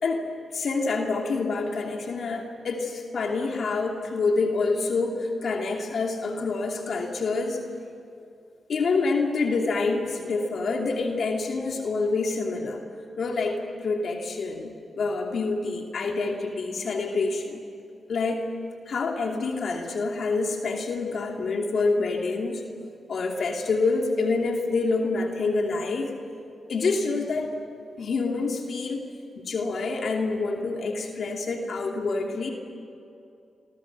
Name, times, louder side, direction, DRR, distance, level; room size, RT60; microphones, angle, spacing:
voice 1, 0.0-7.6 8.7-12.8 13.2-17.6 18.1-18.5 18.9-22.6 23.1-26.2 26.7-27.6 28.0-29.1 29.3-32.5, left 3 dB, 70° left, 1 dB, 2.7 m, -27 dB
26.5 x 23.5 x 6.2 m, 2.6 s
cardioid pair, 65°, 0 cm